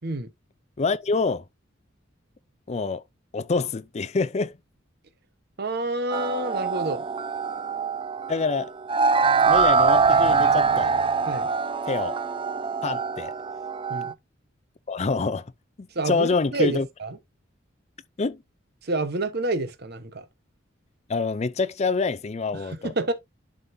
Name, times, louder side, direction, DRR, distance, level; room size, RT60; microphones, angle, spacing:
voice 1, 0.8-1.4 2.7-3.0 3.3-4.6 8.3-8.7 9.5-10.9 11.9-12.2 12.8-13.3 14.9-15.4 15.8-16.9 18.2-18.4 21.1-22.9, left 4 dB, 35° left, 0.4 m, -26 dB
voice 2, 5.6-7.0 11.3-11.5 13.9-14.1 15.9-17.2 18.8-20.2 22.5-23.1, right 2 dB, 55° right, 1.1 m, -28 dB
sound 1, 6.1-14.1, right 5 dB, 25° right, 0.4 m, -23 dB
11.0 x 3.9 x 2.7 m
head